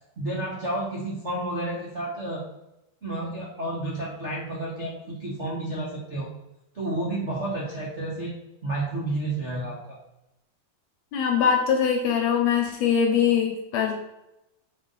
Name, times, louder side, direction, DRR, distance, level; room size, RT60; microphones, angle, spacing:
voice 1, 0.2-2.4 3.0-6.3 6.7-8.4 8.6-10.0, right 2 dB, 70° right, -5 dB, 0.6 m, -31 dB
voice 2, 11.1-14.0, left 7 dB, 65° left, 2 dB, 1.9 m, -22 dB
7.3 x 4.5 x 4.0 m, 0.91 s
omnidirectional pair, 3.8 m